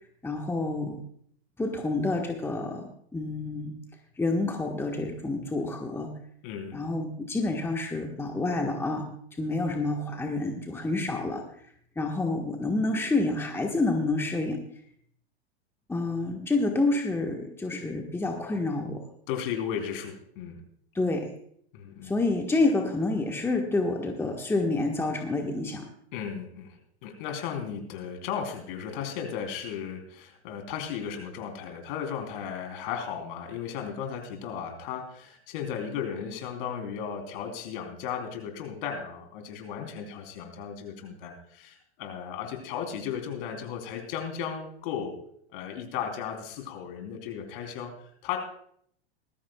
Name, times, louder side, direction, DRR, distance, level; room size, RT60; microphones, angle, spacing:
voice 1, 0.2-1.0 1.6-3.7 4.2-6.1 6.7-9.1 9.4-11.4 12.0-14.6 15.9-19.0 20.9-21.3 22.0-25.9, left 2 dB, 5° left, 2 dB, 1.4 m, -28 dB
voice 2, 6.4-6.8 19.3-20.6 21.7-22.1 26.1-45.1 45.5-48.4, left 7 dB, 55° left, 4 dB, 3.6 m, -35 dB
20.0 x 14.0 x 2.4 m, 0.64 s
hypercardioid pair, 110°, 32 cm